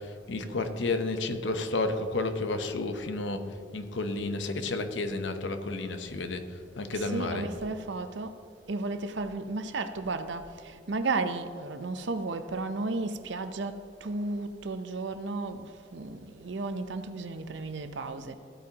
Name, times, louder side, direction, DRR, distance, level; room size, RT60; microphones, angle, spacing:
voice 1, 0.0-7.5, left 2 dB, 75° left, 0.8 m, -31 dB
voice 2, 6.9-8.4 8.7-18.3, right 3 dB, 75° right, 0.7 m, -34 dB
15.5 x 8.4 x 2.9 m
head